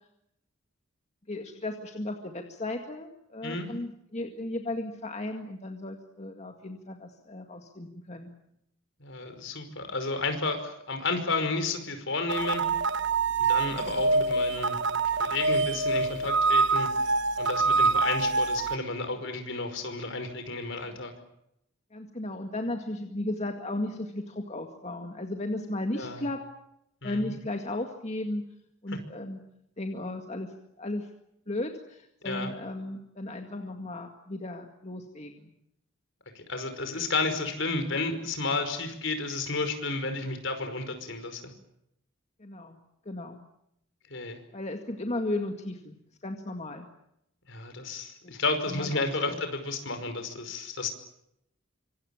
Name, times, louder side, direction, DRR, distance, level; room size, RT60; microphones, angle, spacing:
voice 1, 1.3-8.3 21.9-26.4 27.0-28.4 28.8-29.4 29.8-31.1 31.5-35.5 42.4-42.8 43.1-43.4 44.5-46.0 46.2-46.9 48.2-48.3 48.7-49.4, left 1 dB, 35° left, 4 dB, 2.1 m, -35 dB
voice 2, 9.0-12.6 13.5-14.8 15.2-16.9 17.4-21.1 25.9-26.2 27.0-27.3 32.2-32.5 36.4-41.4 44.1-44.4 47.5-50.9, left 3 dB, 60° left, 8 dB, 5.3 m, -32 dB
sound 1, 12.3-18.8, right 3 dB, 60° right, 0.9 m, -25 dB
26.0 x 25.0 x 7.3 m, 0.79 s
head